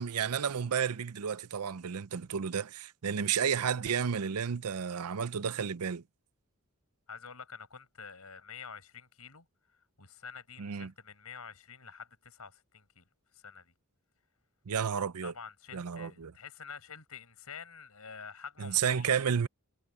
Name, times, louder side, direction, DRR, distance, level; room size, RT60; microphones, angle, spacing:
voice 1, 0.0-6.0 10.6-10.9 14.7-15.3 15.7-16.3 18.6-19.5, right 7 dB, 80° right, 0.6 m, -31 dB
voice 2, 7.1-9.5 10.0-13.0 13.3-13.7 15.2-19.1, left 6 dB, 80° left, 5.9 m, -48 dB
head